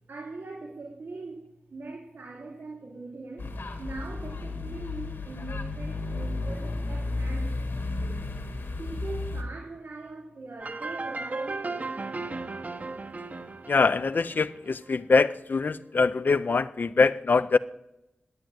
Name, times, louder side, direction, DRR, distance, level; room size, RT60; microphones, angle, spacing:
voice 1, 0.1-8.5 8.8-12.3, right 3 dB, 90° right, 3.0 m, -42 dB
sound 1, 3.4-9.4, left 2 dB, 75° left, 2.2 m, -33 dB
sound 2, 10.6-15.2, right 3 dB, 45° right, 0.9 m, -36 dB
voice 2, 13.7-17.6, left 4 dB, 55° left, 0.4 m, -23 dB
11.5 x 9.0 x 9.0 m
wide cardioid pair, 95°, 4 cm